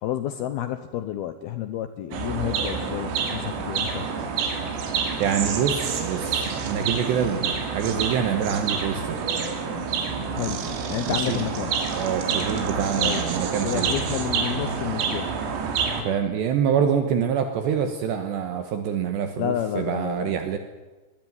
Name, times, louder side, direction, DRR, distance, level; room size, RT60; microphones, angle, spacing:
voice 1, 0.0-4.1 10.3-11.7 13.0-13.3 13.6-15.3 19.4-20.3, left 11 dB, 80° left, 11 dB, 2.2 m, -30 dB
sound 1, 2.1-16.0, right 5 dB, 90° right, 5.6 m, -28 dB
voice 2, 5.2-9.3 11.1-11.4 11.9-14.1 16.0-20.6, right 8 dB, 70° right, 7 dB, 3.2 m, -26 dB
23.5 x 20.5 x 9.7 m, 1.2 s
omnidirectional pair, 5.8 m